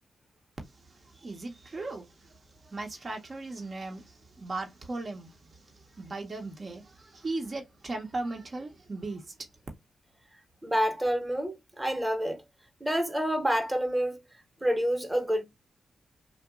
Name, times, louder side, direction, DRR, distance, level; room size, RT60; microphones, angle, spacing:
voice 1, 0.7-9.3, right 2 dB, 45° right, 0.7 m, -38 dB
voice 2, 10.6-12.4 12.8-14.2 14.6-15.5, equal, 20° right, 0.9 m, -28 dB
2.8 x 2.2 x 2.3 m
supercardioid pair, 50°, 0 cm